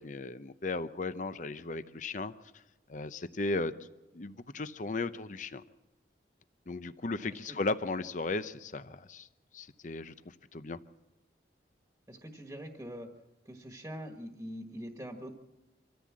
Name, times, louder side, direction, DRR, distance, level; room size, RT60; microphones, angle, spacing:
voice 1, 0.0-2.3 2.9-3.9 4.1-5.6 6.7-9.3 9.5-10.1 10.5-10.8, left 3 dB, 45° left, 13 dB, 0.7 m, -36 dB
voice 2, 12.1-13.1 13.4-15.4, equal, 15° right, 4 dB, 1.5 m, -43 dB
25.0 x 14.0 x 7.5 m, 1.0 s
head